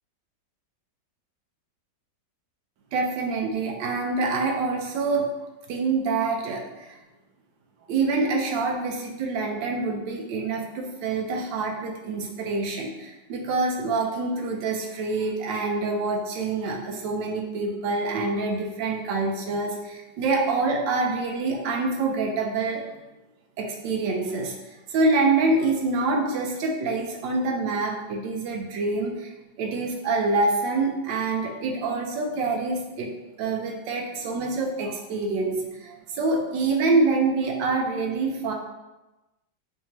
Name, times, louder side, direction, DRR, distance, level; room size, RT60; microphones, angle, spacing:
voice 1, 2.9-5.3 5.7-7.0 7.9-22.8 23.6-24.5 24.9-29.3 29.6-33.1 33.4-38.5, right 3 dB, 90° right, 1 dB, 1.3 m, -26 dB
4.7 x 2.8 x 2.9 m, 1.0 s
omnidirectional pair, 2.0 m